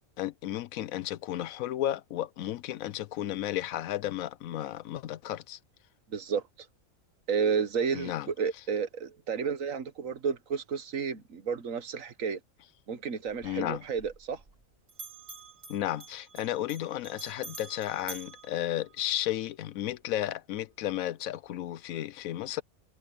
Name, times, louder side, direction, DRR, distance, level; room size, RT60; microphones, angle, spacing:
voice 1, 0.2-5.6 7.9-8.3 13.4-13.8 15.7-22.6, left 13 dB, 85° left, 1.0 m, -33 dB
voice 2, 6.1-6.4 7.3-12.4 12.9-14.4, right 6 dB, 70° right, 1.6 m, -31 dB
Bell, 13.3-14.6 14.9-19.4, right 3 dB, 45° right, 2.5 m, -48 dB
omnidirectional pair, 1.4 m